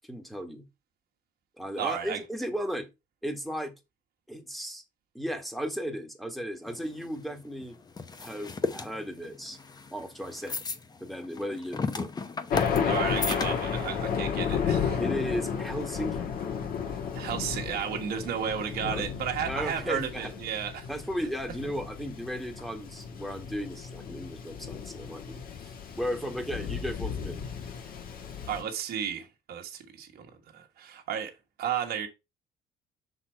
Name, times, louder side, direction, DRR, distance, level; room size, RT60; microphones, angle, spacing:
voice 1, 0.1-0.7 1.6-2.9 3.2-3.7 4.3-4.8 5.1-7.8 8.2-9.6 9.9-10.7 11.0-12.1 15.0-16.3 18.8-19.0 19.5-20.3 20.9-25.4 25.9-27.4, equal, ahead, 1.3 m, -35 dB
voice 2, 1.8-2.2 12.9-15.0 17.1-20.9 28.5-30.3 30.5-31.3 31.6-32.1, right 8 dB, 65° right, 1.4 m, -33 dB
sound 1, 6.7-14.0, left 4 dB, 25° left, 0.7 m, -35 dB
Thunder, 12.5-28.6, left 7 dB, 60° left, 1.7 m, -33 dB
5.8 x 4.2 x 4.4 m
cardioid pair, 110°, 17 cm